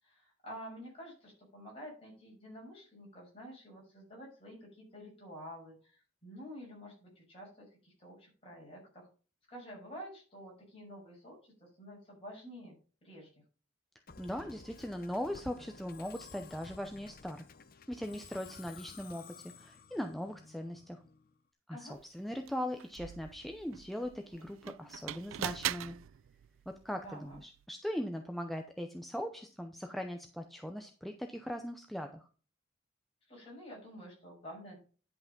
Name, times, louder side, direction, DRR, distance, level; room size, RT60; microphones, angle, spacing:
voice 1, 0.0-9.1 9.5-12.7 13.0-13.3 21.7-22.0 27.0-27.4 33.3-34.8, equal, 30° left, -3 dB, 6.3 m, -49 dB
Musical instrument, 14.1-21.4, left 5 dB, 45° left, 0.7 m, -53 dB
voice 2, 14.2-17.4 17.9-21.0 21.7-26.0 26.7-32.3, equal, ahead, 4 dB, 0.6 m, -40 dB
sound 1, 21.9-22.0 22.4-27.7, right 11 dB, 75° right, 0.3 m, -42 dB
10.5 x 5.8 x 5.2 m, 0.38 s
head